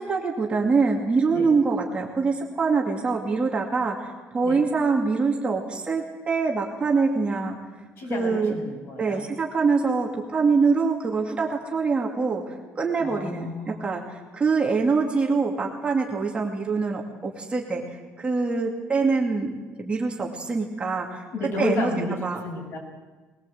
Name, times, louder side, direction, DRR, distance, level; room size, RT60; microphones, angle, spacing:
voice 1, 0.0-7.6 8.1-8.6 9.0-19.5 19.8-21.2 21.6-21.9 22.2-22.4, right 4 dB, 20° right, -1 dB, 2.5 m, -24 dB
voice 2, 8.0-9.2 13.0-13.9 21.3-22.2 22.4-22.8, left 2 dB, 50° left, 1 dB, 7.3 m, -31 dB
21.5 x 21.0 x 7.9 m, 1.3 s
cardioid pair, 165°, 5 cm